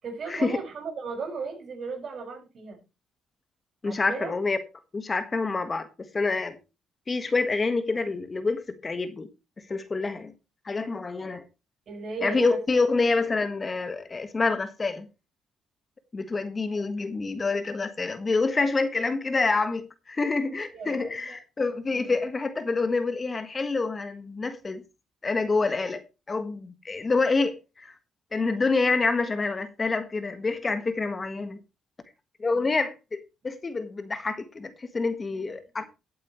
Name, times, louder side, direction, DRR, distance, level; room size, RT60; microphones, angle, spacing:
voice 1, 0.0-2.8 3.8-4.3 11.9-12.6 20.7-21.4 21.9-22.3 32.5-32.7 35.3-35.6, right 4 dB, 55° right, 5.9 m, -36 dB
voice 2, 3.8-4.6 4.9-5.9 6.1-6.6 7.1-9.3 9.6-10.3 10.6-11.4 12.2-15.1 16.1-24.8 25.2-26.0 26.3-27.9 28.3-31.6 32.4-35.8, left 3 dB, 30° left, 1.5 m, -27 dB
16.5 x 8.6 x 3.1 m
cardioid pair, 90°, 0 cm